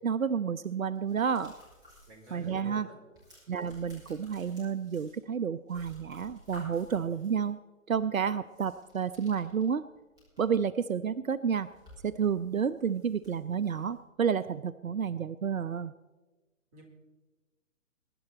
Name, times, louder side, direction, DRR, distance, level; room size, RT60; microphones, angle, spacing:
voice 1, 0.0-1.5 2.3-2.9 3.5-7.6 7.9-9.8 10.4-11.7 12.0-15.9, right 7 dB, 80° right, 16 dB, 0.6 m, -30 dB
sound 1, 0.7-2.6 2.9-5.4 5.7-7.4 8.4-10.6 10.9-11.0 11.4-14.0, equal, 10° right, 5.9 m, -56 dB
voice 2, 2.1-2.9 16.7-16.8, right 1 dB, 25° right, 0 dB, 4.0 m, -49 dB
22.5 x 11.0 x 4.2 m, 1.2 s
figure-of-eight pair, 135°, 41 cm